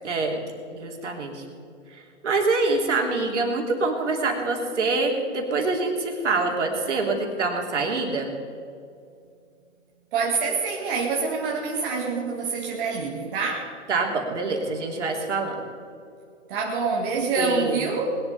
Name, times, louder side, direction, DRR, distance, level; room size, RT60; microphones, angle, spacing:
voice 1, 0.0-0.4 0.7-1.4 1.9-8.3 13.9-15.6 17.4-17.8, right 3 dB, 65° right, 1 dB, 3.2 m, -25 dB
voice 2, 10.1-13.7 16.5-18.2, right 4 dB, 45° right, -1 dB, 1.9 m, -26 dB
20.5 x 11.0 x 4.2 m, 2.4 s
hypercardioid pair, 125°, 37 cm